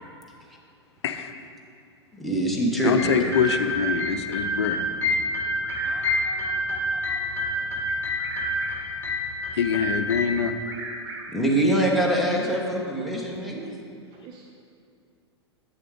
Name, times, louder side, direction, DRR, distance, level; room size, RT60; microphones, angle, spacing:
voice 1, 2.1-3.0 3.2-3.3 11.3-13.7, right 1 dB, ahead, -3 dB, 1.2 m, -24 dB
voice 2, 2.8-4.8 9.5-10.5, left 7 dB, 70° left, 8 dB, 0.6 m, -24 dB
Bird vocalization bird call bird song, 2.8-4.0 5.3-6.5 7.9-9.0 10.4-11.5, right 3 dB, 65° right, 1.0 m, -39 dB
sound 1, 3.0-10.2, left 1 dB, 15° left, 1.5 m, -28 dB
voice 3, 5.8-7.8 12.4-12.6 13.2-13.3 14.1-14.4, right 4 dB, 35° right, 1 dB, 0.6 m, -47 dB
8.6 x 6.7 x 3.7 m, 2.4 s
hypercardioid pair, 105°, 15 cm